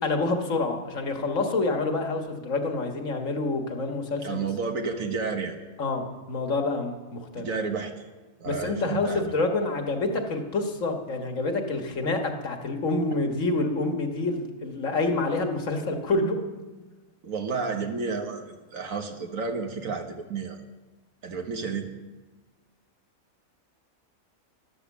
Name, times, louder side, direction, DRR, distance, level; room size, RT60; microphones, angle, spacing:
voice 1, 0.0-4.5 5.8-7.5 8.5-16.4, left 2 dB, 65° left, 4 dB, 1.9 m, -27 dB
voice 2, 4.2-5.6 7.4-7.9 8.4-9.3 17.2-20.6 21.2-21.9, right 5 dB, 70° right, 5 dB, 1.8 m, -31 dB
13.0 x 12.0 x 7.3 m, 1.2 s
omnidirectional pair, 1.5 m